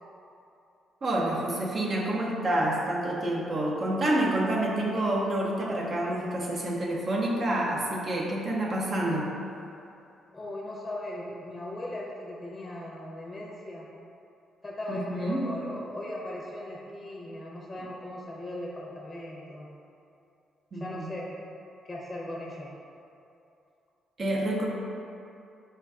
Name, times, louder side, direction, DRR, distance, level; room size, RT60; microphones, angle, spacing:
voice 1, 1.0-9.3 14.9-15.5 20.7-21.1 24.2-24.7, right 1 dB, 45° right, -3 dB, 0.7 m, -28 dB
voice 2, 10.3-13.9 14.6-19.7 20.7-21.3 21.8-22.7, left 1 dB, 25° left, -3 dB, 0.6 m, -38 dB
4.3 x 2.2 x 3.6 m, 2.6 s
cardioid pair, 90°, 0 cm